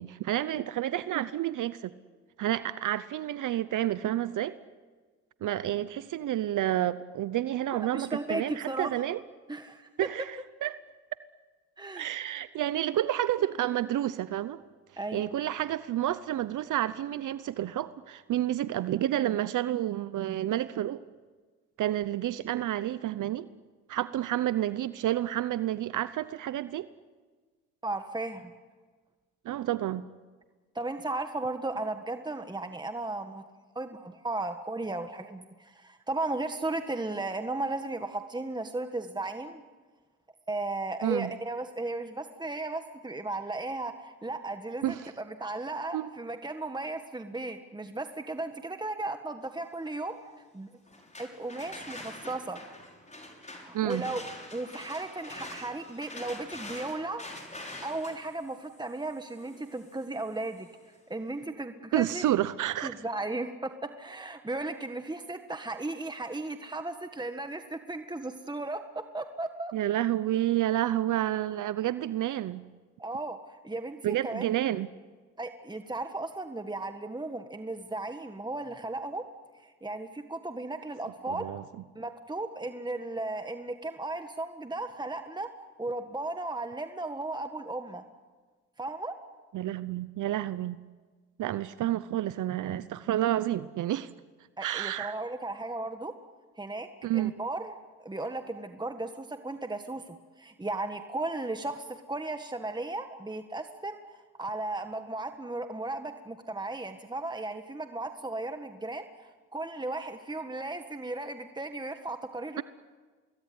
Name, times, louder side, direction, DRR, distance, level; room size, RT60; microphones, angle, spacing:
voice 1, 0.0-1.9 2.4-4.5 5.4-9.2 10.0-10.8 12.0-14.6 15.1-21.0 21.8-23.5 23.9-26.9 29.4-30.0 41.0-41.3 44.8-45.1 45.9-46.1 53.7-54.0 61.9-62.9 69.7-72.6 74.0-74.9 81.3-81.6 89.5-90.8 91.4-94.1 94.6-95.1 97.0-97.3, right 13 dB, 75° right, 15 dB, 0.8 m, -30 dB
voice 2, 7.7-8.9 9.5-9.9 11.8-12.1 15.0-15.4 27.8-28.5 30.7-33.4 33.7-39.6 40.5-50.2 50.5-50.7 51.2-52.6 53.4-54.2 54.5-57.3 57.8-60.7 61.1-62.2 62.8-69.7 73.0-74.5 75.4-79.2 79.6-81.5 81.9-85.5 85.8-88.0 88.8-89.2 94.6-96.1 96.6-96.9 97.1-97.7 98.0-112.6, right 2 dB, 15° right, 7 dB, 1.6 m, -35 dB
sound 1, 50.9-60.7, left 2 dB, 25° left, 6.6 m, -45 dB
25.0 x 21.0 x 9.6 m, 1.4 s
cardioid pair, 70°, 31 cm